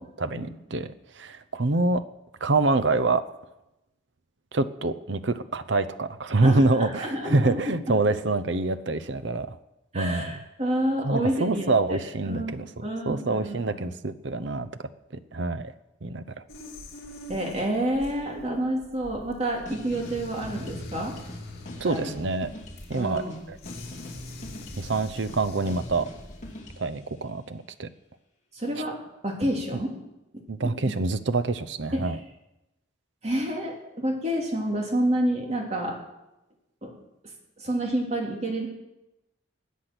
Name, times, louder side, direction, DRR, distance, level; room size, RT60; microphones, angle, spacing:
voice 1, 0.0-2.0 2.4-3.2 4.5-9.6 9.9-10.3 11.0-14.7 15.3-15.7 16.0-16.2 21.8-22.5 22.9-23.2 23.5-23.6 24.8-26.1 26.8-27.9 28.8-28.9 29.7-29.8 30.5-32.2, right 3 dB, 70° right, 11 dB, 0.8 m, -26 dB
voice 2, 6.4-8.0 9.9-12.0 12.3-13.8 17.3-21.1 21.8-22.1 23.0-23.3 28.5-29.0 29.2-29.9 30.3-30.4 31.9-32.1 33.2-36.0 36.8-36.9 37.6-38.7, right 1 dB, 35° right, 0 dB, 2.9 m, -29 dB
sound 1, 16.5-26.6, left 1 dB, 55° left, 3.2 m, -43 dB
sound 2, 19.5-27.0, left 1 dB, 35° left, 2.6 m, -43 dB
20.5 x 8.3 x 6.1 m, 0.92 s
head